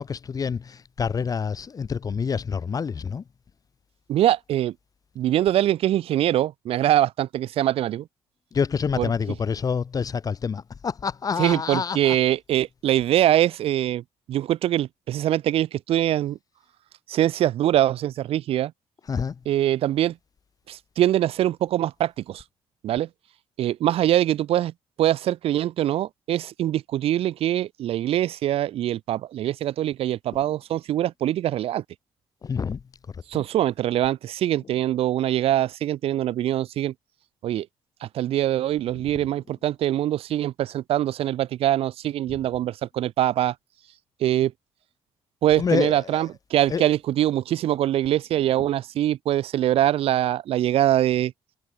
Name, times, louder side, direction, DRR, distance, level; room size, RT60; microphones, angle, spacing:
voice 1, 0.0-3.2 8.5-12.2 19.1-19.4 32.4-32.8 33.1-33.4 45.6-46.3 46.7-46.8, left 6 dB, 35° left, 2.5 m, -27 dB
voice 2, 4.1-4.7 5.1-8.1 9.0-9.1 11.4-16.4 17.1-18.7 19.4-20.2 20.7-22.4 22.8-23.1 23.6-24.7 25.0-31.8 33.3-36.9 37.4-37.7 38.0-43.5 44.2-44.5 45.4-51.3, right 12 dB, 75° right, 1.7 m, -23 dB
cardioid pair, 115°, 10 cm